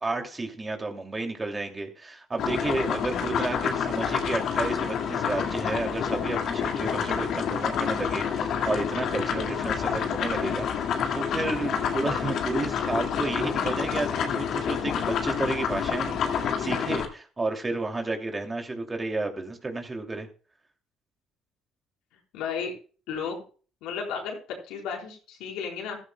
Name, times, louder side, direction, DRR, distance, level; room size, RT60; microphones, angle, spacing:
voice 1, 0.0-20.3, right 3 dB, 25° right, 4 dB, 2.8 m, -32 dB
sound 1, 2.4-17.1, left 7 dB, 65° left, 2.1 m, -28 dB
voice 2, 22.3-22.8 23.1-23.4 23.8-26.0, left 6 dB, 80° left, 0 dB, 4.3 m, -33 dB
15.0 x 13.0 x 2.3 m, 0.37 s
supercardioid pair, 70°, 0 cm